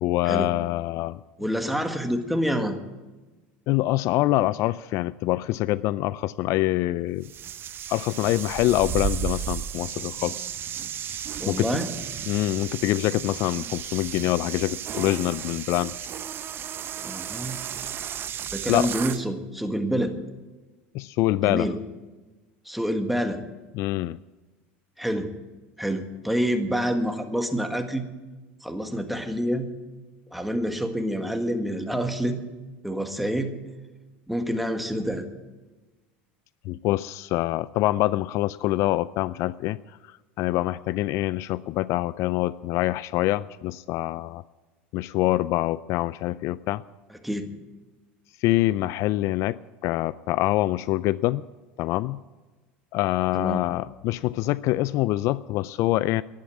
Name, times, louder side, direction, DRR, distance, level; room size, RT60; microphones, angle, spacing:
voice 1, 0.0-1.2 3.7-7.3 7.9-10.5 11.4-11.7 12.3-15.9 18.7-18.9 20.9-21.7 23.7-24.2 36.7-39.8 40.4-44.4 44.9-46.8 48.4-49.6 49.8-51.4 51.8-52.2 52.9-56.2, left 16 dB, 55° left, 18 dB, 0.3 m, -25 dB
voice 2, 1.4-2.8 11.4-11.9 17.0-17.6 18.5-20.1 21.4-21.8 22.7-23.4 25.0-25.3 25.8-28.0 28.6-29.7 30.3-32.4 32.8-33.5 34.3-35.3 47.2-47.5 53.3-53.6, equal, ahead, 6 dB, 1.7 m, -27 dB
sound 1, 7.2-19.2, right 9 dB, 40° right, 0.7 m, -34 dB
11.5 x 11.5 x 8.7 m, 1.2 s
supercardioid pair, 100°, 6 cm